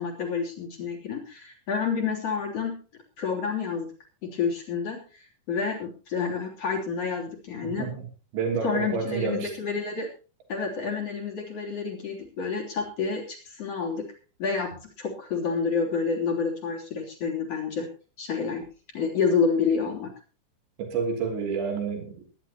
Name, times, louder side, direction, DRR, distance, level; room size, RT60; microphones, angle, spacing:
voice 1, 0.0-2.8 3.2-3.9 4.2-7.9 8.6-10.1 10.5-14.1 14.4-17.9 18.2-18.7 18.9-20.1, left 5 dB, 35° left, 1 dB, 3.8 m, -29 dB
voice 2, 7.6-8.0 8.3-9.5 20.8-22.2, right 5 dB, 75° right, 2 dB, 5.3 m, -29 dB
21.5 x 11.0 x 3.0 m, 0.36 s
omnidirectional pair, 5.2 m